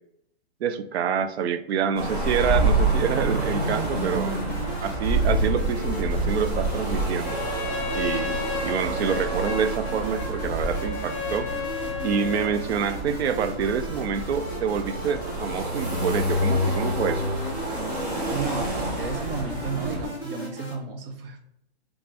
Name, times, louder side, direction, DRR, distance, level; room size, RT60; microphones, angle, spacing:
voice 1, 0.6-4.4 4.8-7.4 7.9-11.5 12.0-17.2, right 7 dB, 80° right, 11 dB, 0.5 m, -27 dB
sound 1, 2.0-20.1, right 1 dB, 40° right, 1.1 m, -28 dB
sound 2, 3.6-20.7, right 1 dB, 15° right, 0.6 m, -38 dB
Trumpet, 7.1-12.6, left 5 dB, 30° left, 0.6 m, -33 dB
voice 2, 18.3-21.4, right 4 dB, 60° right, 3 dB, 0.8 m, -33 dB
3.5 x 2.5 x 3.3 m, 0.75 s
hypercardioid pair, 160°, 32 cm